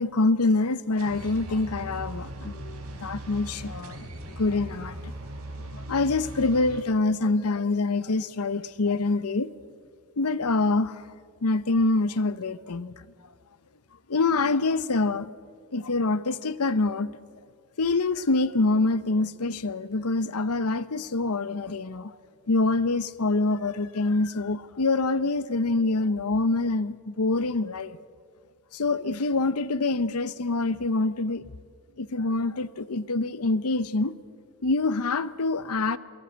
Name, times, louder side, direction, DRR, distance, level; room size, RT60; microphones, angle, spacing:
voice 1, 0.0-4.1 4.4-5.1 5.6-9.5 10.2-11.0 11.4-12.9 14.1-15.3 15.7-17.1 17.8-22.2 22.5-28.0 28.7-31.4 32.0-34.1 34.6-36.0, left 3 dB, 85° left, 0.8 m, -25 dB
sound 1, 1.0-6.8, right 1 dB, 80° right, 4.1 m, -39 dB
28.0 x 18.0 x 8.0 m
head